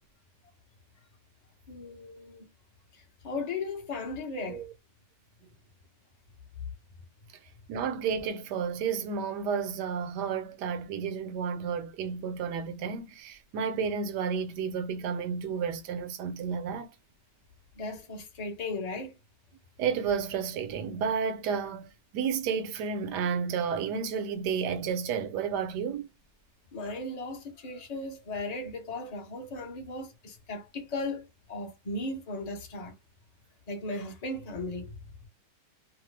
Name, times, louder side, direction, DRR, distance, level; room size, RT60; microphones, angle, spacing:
voice 1, 1.7-2.5 2.9-4.6 17.8-19.1 26.7-32.9 33.7-34.9, left 2 dB, 35° left, 0.6 m, -36 dB
voice 2, 7.7-16.9 19.8-26.1, right 6 dB, 80° right, 1.2 m, -31 dB
3.0 x 2.1 x 3.1 m
omnidirectional pair, 1.8 m